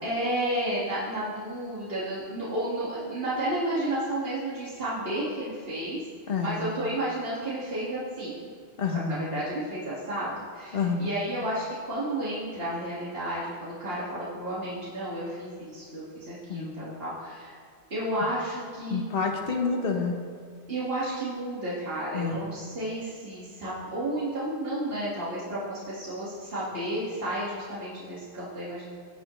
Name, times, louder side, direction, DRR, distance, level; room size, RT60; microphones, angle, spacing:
voice 1, 0.0-6.0 6.4-8.4 8.9-17.6 17.9-19.1 20.7-28.9, right 1 dB, 60° right, -9 dB, 2.4 m, -32 dB
voice 2, 6.3-6.6 8.8-9.2 10.7-11.1 16.5-16.7 18.9-20.2 22.1-22.3, left 5 dB, 60° left, 2 dB, 1.3 m, -28 dB
18.0 x 7.5 x 3.2 m, 2.1 s
omnidirectional pair, 1.1 m